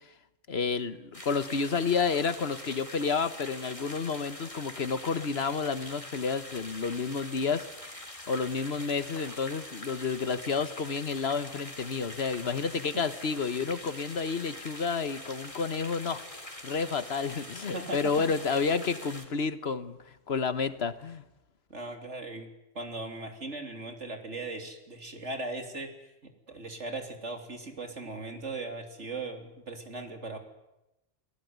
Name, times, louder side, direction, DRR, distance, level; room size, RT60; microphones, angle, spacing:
voice 1, 0.5-7.7 8.3-16.2 16.6-21.2, left 5 dB, 60° left, 12 dB, 1.6 m, -30 dB
sound 1, 1.1-19.3, left 1 dB, 25° left, 3.5 m, -44 dB
voice 2, 17.7-18.1 21.7-22.5 22.8-25.9 26.2-30.4, right 2 dB, 75° right, 4 dB, 3.7 m, -38 dB
29.5 x 19.0 x 9.6 m, 0.93 s
omnidirectional pair, 1.2 m